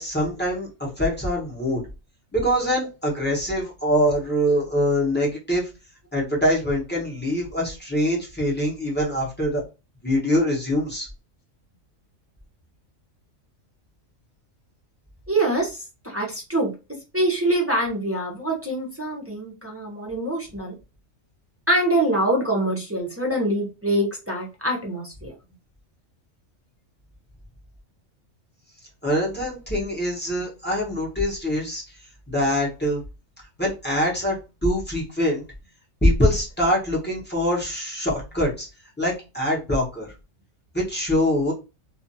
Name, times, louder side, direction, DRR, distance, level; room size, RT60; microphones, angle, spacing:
voice 1, 0.0-1.8 2.3-5.7 6.1-9.6 10.0-11.1 29.0-31.8 32.3-33.0 33.6-34.4 34.6-35.4 36.0-38.7 39.0-40.1 40.7-41.5, equal, 10° left, -4 dB, 0.8 m, -24 dB
voice 2, 15.3-16.7 17.1-20.7 21.7-25.3, right 1 dB, 20° right, -1 dB, 0.4 m, -24 dB
2.4 x 2.4 x 2.6 m, 0.28 s
omnidirectional pair, 1.4 m